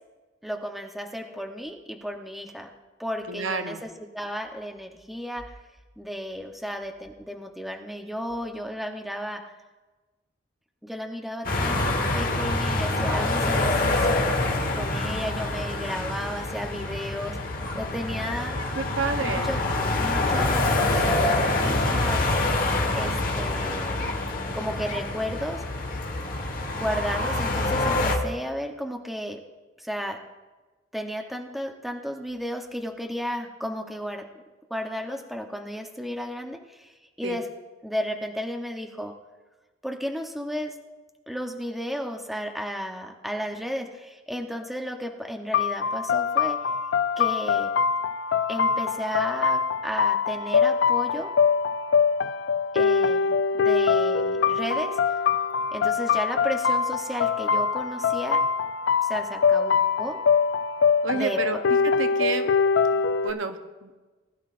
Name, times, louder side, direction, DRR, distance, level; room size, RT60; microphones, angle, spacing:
voice 1, 0.4-2.7 3.0-5.5 6.0-9.5 10.8-14.2 14.7-17.4 17.7-18.6 19.2-19.6 20.0-22.3 22.9-24.0 24.5-25.6 26.7-29.4 29.8-30.2 30.9-34.3 34.7-36.9 37.2-37.5 37.8-39.1 39.8-40.8 41.3-46.6 47.2-47.7 48.5-51.3 52.7-55.0 55.7-58.4 59.0-60.2 61.1-61.4, equal, ahead, 2 dB, 0.8 m, -33 dB
voice 2, 3.3-3.8 18.1-18.2 18.8-19.5 37.2-37.4 61.0-61.6 62.0-62.5 62.8-63.0 63.2-63.9, right 4 dB, 85° right, 7 dB, 0.9 m, -29 dB
sound 1, 11.4-28.2, left 2 dB, 45° left, 1.3 m, -26 dB
sound 2, 45.5-63.3, left 6 dB, 65° left, 0.4 m, -23 dB
19.5 x 11.5 x 2.5 m, 1.2 s
head